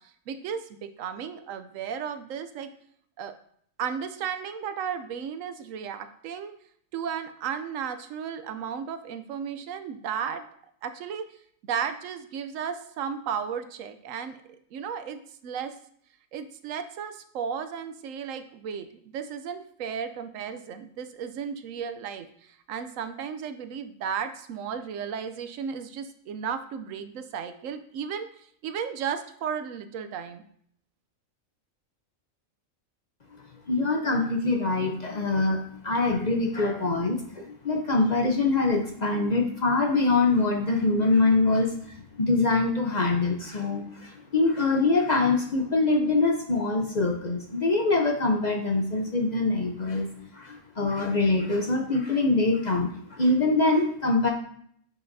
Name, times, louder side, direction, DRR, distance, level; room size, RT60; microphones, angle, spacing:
voice 1, 0.3-2.7 3.2-3.3 3.8-6.5 6.9-10.5 10.8-11.3 11.6-15.7 16.3-30.4, right 7 dB, 80° right, 10 dB, 1.0 m, -34 dB
voice 2, 33.7-50.1 50.3-54.3, left 3 dB, 40° left, 1 dB, 0.7 m, -24 dB
9.3 x 5.8 x 2.6 m, 0.65 s
omnidirectional pair, 1.4 m